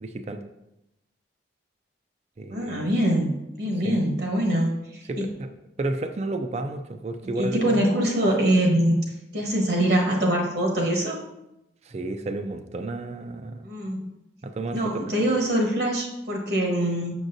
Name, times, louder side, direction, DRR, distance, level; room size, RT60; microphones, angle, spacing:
voice 1, 0.0-0.4 2.4-2.9 3.8-4.0 5.1-5.5 5.8-7.8 11.8-13.7 14.4-15.0, right 2 dB, 35° right, 8 dB, 0.4 m, -32 dB
voice 2, 2.5-5.3 7.3-9.0 9.3-11.2 13.6-14.1 14.7-17.1, right 1 dB, 60° right, 0 dB, 1.1 m, -24 dB
6.2 x 6.2 x 2.6 m, 0.90 s
head